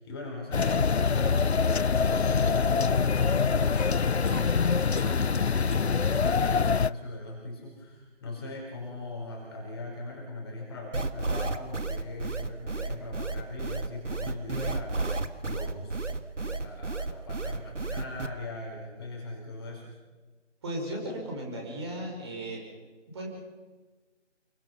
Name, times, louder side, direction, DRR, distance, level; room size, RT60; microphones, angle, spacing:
voice 1, 0.0-16.0 16.4-19.9, left 2 dB, 20° left, -1 dB, 4.7 m, -40 dB
sound 1, 0.5-6.9, left 5 dB, 60° left, 0.6 m, -24 dB
sound 2, 3.8-4.5 5.0-5.3 5.7-6.0 6.4-6.8 8.6-8.7, left 2 dB, 45° left, 2.0 m, -42 dB
sound 3, 10.9-18.3, right 3 dB, 75° right, 1.9 m, -31 dB
voice 2, 20.6-22.6 23.1-23.3, right 1 dB, 20° right, 0 dB, 5.7 m, -36 dB
28.5 x 23.5 x 5.7 m, 1.3 s
figure-of-eight pair, 160°, 36 cm